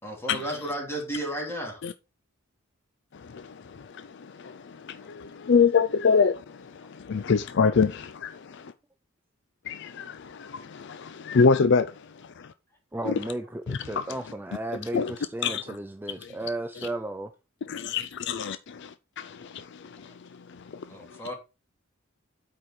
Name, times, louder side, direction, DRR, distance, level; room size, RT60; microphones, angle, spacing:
voice 1, 0.0-1.8 20.9-21.3, right 1 dB, 10° left, 2.7 m, -33 dB
voice 2, 3.1-8.7 9.7-11.9 12.4-12.5 13.0-13.2 13.7-14.0 14.9-15.1 15.4-15.6 16.2-16.3 17.7-20.1 20.5-20.8 21.1-21.2, left 5 dB, 60° left, 0.4 m, -26 dB
voice 3, 12.9-17.3, right 1 dB, 10° right, 0.4 m, -34 dB
8.6 x 4.8 x 4.4 m
head